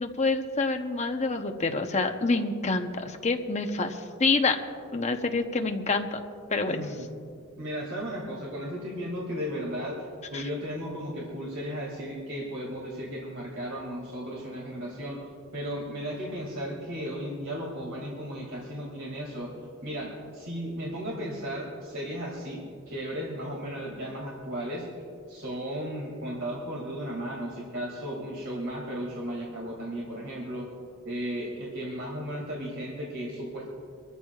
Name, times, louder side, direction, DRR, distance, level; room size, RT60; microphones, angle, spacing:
voice 1, 0.0-4.6 4.9-6.2 6.5-6.8 10.3-10.4, left 3 dB, 30° left, 5 dB, 0.8 m, -27 dB
voice 2, 6.7-7.1 7.6-9.9 10.3-15.2 15.5-19.5 19.8-22.6 22.9-24.9 25.3-30.7 31.0-33.7, equal, 60° right, -3 dB, 2.3 m, -35 dB
25.5 x 13.5 x 2.4 m, 2.3 s
head